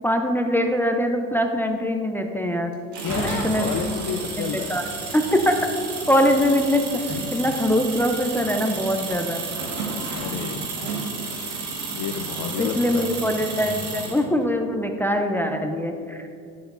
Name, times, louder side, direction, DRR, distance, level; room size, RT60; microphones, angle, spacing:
voice 1, 0.0-2.7 3.1-3.7 4.5-4.8 5.1-5.6 6.1-6.8 7.1-9.4 12.6-16.2, equal, 5° left, 4 dB, 0.5 m, -22 dB
sound 1, 2.9-14.2, right 3 dB, 50° right, 1.8 m, -31 dB
voice 2, 3.0-4.8 10.1-11.0 11.9-13.1, left 7 dB, 55° left, 6 dB, 0.5 m, -31 dB
10.5 x 6.7 x 2.6 m, 2.4 s
supercardioid pair, 80°, 37 cm